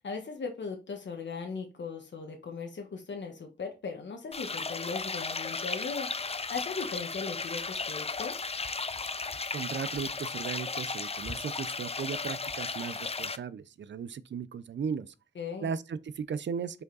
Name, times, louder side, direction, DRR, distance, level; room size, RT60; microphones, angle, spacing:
voice 1, 0.0-8.5 15.3-15.7, left 5 dB, 85° left, 1.3 m, -38 dB
sound 1, 4.3-13.4, left 4 dB, 35° left, 0.6 m, -35 dB
voice 2, 9.5-15.1 15.6-16.8, right 6 dB, 85° right, 0.5 m, -36 dB
5.1 x 4.8 x 4.0 m
wide cardioid pair, 70°, 18 cm